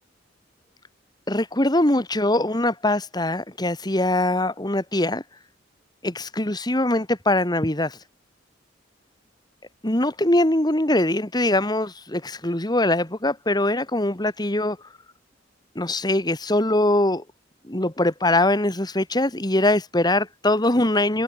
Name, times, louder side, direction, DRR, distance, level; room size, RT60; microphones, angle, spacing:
voice 1, 1.3-5.2 6.0-8.0 9.8-14.8 15.8-17.2 17.7-21.2, left 1 dB, 20° left, 2.4 m, -22 dB
head